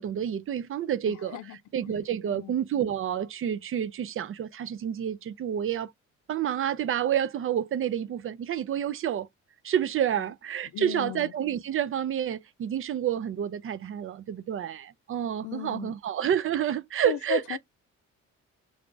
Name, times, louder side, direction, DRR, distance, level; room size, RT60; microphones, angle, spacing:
voice 1, 0.0-1.4 1.7-5.9 6.3-9.3 9.6-17.6, right 9 dB, 45° right, 0.4 m, -29 dB
voice 2, 1.1-1.6 1.8-2.0 2.3-2.5 10.2-10.3 10.7-11.3 15.4-15.9 17.0-17.6, left 12 dB, 75° left, 0.6 m, -36 dB
3.5 x 2.4 x 3.7 m
cardioid pair, 90°, 30 cm